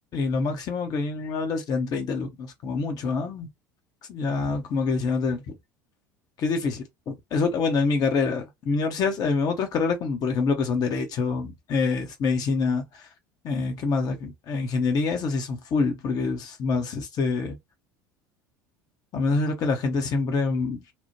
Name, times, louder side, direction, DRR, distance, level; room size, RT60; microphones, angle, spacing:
voice 1, 0.1-3.5 4.1-5.4 6.4-13.1 13.4-17.6 19.1-20.8, left 4 dB, 40° left, 0.6 m, -26 dB
2.9 x 2.0 x 2.7 m
figure-of-eight pair, 70°, 10 cm